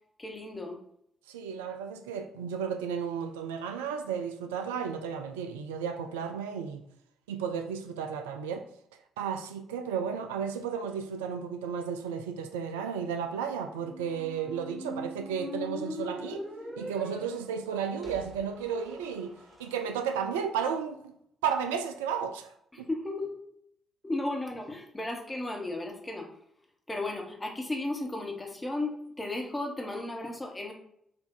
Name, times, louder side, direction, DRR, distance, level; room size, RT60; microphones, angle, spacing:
voice 1, 0.2-0.8 22.7-23.4 24.0-26.3 26.9-30.7, left 2 dB, 20° left, 1.1 m, -34 dB
voice 2, 1.3-6.8 7.3-8.7 9.2-16.4 16.8-19.3 19.6-21.1 21.4-22.9, right 7 dB, 75° right, 0.3 m, -33 dB
Squeak, 13.7-19.7, equal, 25° right, 1.4 m, -42 dB
4.7 x 2.6 x 3.9 m
figure-of-eight pair, 40°, 0 cm